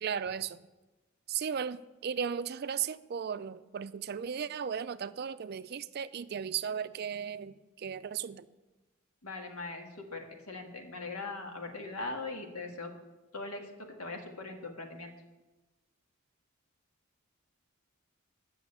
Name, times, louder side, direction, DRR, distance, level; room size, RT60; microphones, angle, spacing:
voice 1, 0.0-0.6 1.3-8.5, right 7 dB, 50° right, 14 dB, 0.3 m, -36 dB
voice 2, 9.2-12.9 13.3-15.1, left 3 dB, 85° left, 3 dB, 1.6 m, -40 dB
8.8 x 6.3 x 8.3 m, 1.1 s
head